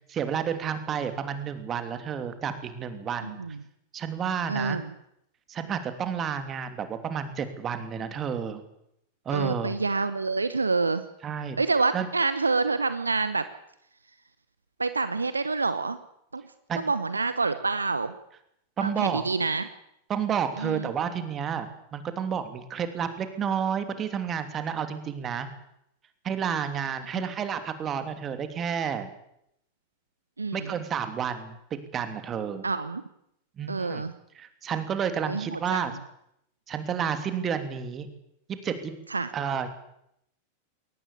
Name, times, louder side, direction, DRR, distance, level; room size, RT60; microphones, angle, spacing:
voice 1, 0.1-3.4 3.9-4.8 5.5-8.6 9.2-9.7 11.2-11.6 11.9-12.1 16.7-16.8 18.8-19.2 20.1-21.7 21.9-25.5 26.2-29.1 30.5-31.5 31.9-32.7 33.6-34.0 34.3-35.9 36.7-38.1 38.5-38.9 39.3-39.7, right 7 dB, 25° right, 9 dB, 3.0 m, -30 dB
voice 2, 3.2-3.6 4.5-4.9 9.3-11.0 11.6-13.5 14.8-16.0 16.3-16.4 16.8-18.1 18.8-19.7 20.6-20.9 27.1-27.2 30.4-30.7 32.6-33.0 33.7-34.1 35.3-35.9 39.1-39.3, right 4 dB, 80° right, 13 dB, 1.0 m, -27 dB
22.0 x 18.5 x 8.5 m, 0.78 s
figure-of-eight pair, 90°, 0 cm